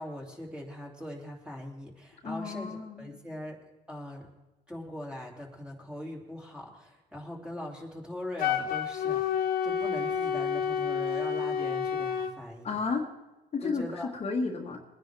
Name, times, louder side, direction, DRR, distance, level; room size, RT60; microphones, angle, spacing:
voice 1, 0.0-4.3 4.7-12.7 13.6-14.1, left 1 dB, 5° right, -1 dB, 2.8 m, -41 dB
voice 2, 2.2-3.2 12.6-13.1 13.5-13.9 14.2-14.8, left 4 dB, 35° left, 1 dB, 1.6 m, -32 dB
Wind instrument woodwind instrument, 8.4-12.3, left 7 dB, 60° left, 1.3 m, -29 dB
21.0 x 10.0 x 3.4 m, 1.1 s
cardioid pair, 110°, 17 cm